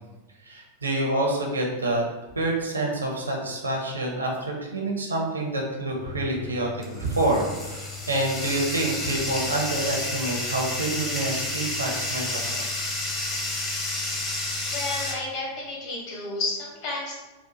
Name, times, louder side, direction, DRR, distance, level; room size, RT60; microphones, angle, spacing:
voice 1, 0.4-2.0 2.3-12.6, right 2 dB, 75° right, 0 dB, 0.7 m, -27 dB
Bathtub (filling or washing), 5.9-15.1, left 2 dB, 25° left, 0.7 m, -31 dB
voice 2, 14.7-17.1, left 2 dB, 45° left, -4 dB, 1.2 m, -31 dB
4.1 x 2.2 x 2.9 m, 1.2 s
figure-of-eight pair, 90°, 0 cm